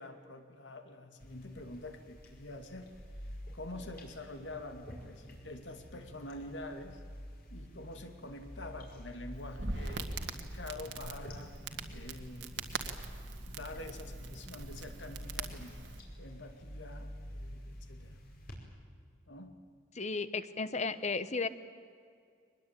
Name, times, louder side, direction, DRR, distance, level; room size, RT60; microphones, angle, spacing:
voice 1, 0.0-2.9 3.5-7.0 7.5-11.5 11.9-12.7 13.5-15.8 16.2-18.2 19.3-19.6, left 2 dB, 80° left, 7 dB, 2.4 m, -46 dB
sound 1, 1.2-18.5, equal, 55° left, 5.2 m, -49 dB
Crackle, 9.3-16.0, right 3 dB, 70° right, 1.9 m, -42 dB
voice 2, 20.0-21.5, left 4 dB, 40° left, 13 dB, 1.1 m, -34 dB
24.0 x 21.0 x 9.0 m, 2.2 s
head